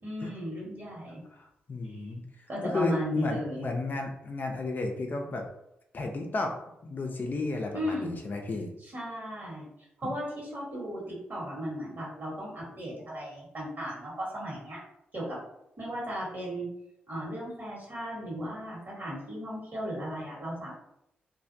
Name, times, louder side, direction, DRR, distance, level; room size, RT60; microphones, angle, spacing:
voice 1, 0.0-1.2 1.8-2.1 2.5-3.7 7.7-8.1 8.8-9.7 10.0-14.8 15.1-15.4 15.8-16.7 17.1-20.7, equal, 50° right, -5 dB, 1.4 m, -35 dB
voice 2, 1.4-2.2 2.6-5.5 5.9-6.6 6.8-8.7 10.0-10.1, left 3 dB, 45° left, 2 dB, 0.4 m, -33 dB
2.5 x 2.1 x 2.6 m, 0.80 s
supercardioid pair, 45°, 4 cm